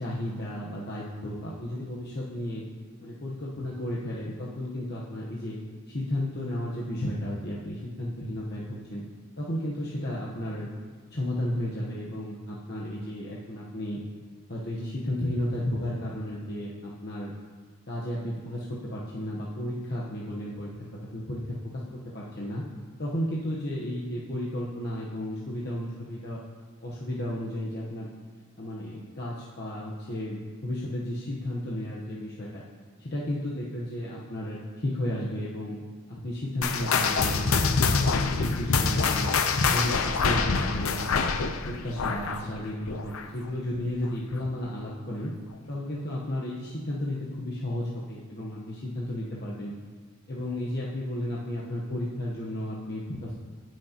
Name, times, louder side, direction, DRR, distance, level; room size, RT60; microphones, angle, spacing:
voice 1, 0.0-2.6 3.0-5.6 5.9-9.0 9.4-10.7 11.1-14.0 14.5-17.3 17.9-20.9 21.1-21.8 22.1-22.6 23.0-26.4 26.8-28.1 28.6-32.6 33.0-35.8 36.1-39.3 39.7-41.3 41.7-45.3 45.7-49.7 50.3-53.3, left 1 dB, 50° left, -5 dB, 1.0 m, -33 dB
sound 1, 36.6-43.5 43.7-44.1 44.7-44.8 45.5-45.6, left 4 dB, 75° left, 0.6 m, -25 dB
18.0 x 6.3 x 2.9 m, 1.5 s
head